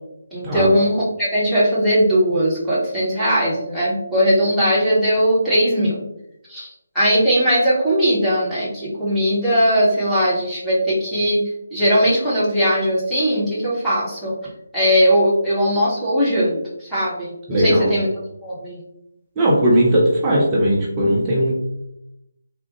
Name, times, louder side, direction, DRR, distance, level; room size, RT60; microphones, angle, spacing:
voice 1, 0.3-0.9 1.2-6.0 6.5-11.4 11.7-14.3 14.7-18.1 18.4-18.8, equal, ahead, -13 dB, 1.0 m, -19 dB
voice 2, 17.5-17.9 19.4-21.6, right 1 dB, 15° right, -5 dB, 0.6 m, -17 dB
3.5 x 2.0 x 2.9 m, 0.82 s
figure-of-eight pair, 150°, 0 cm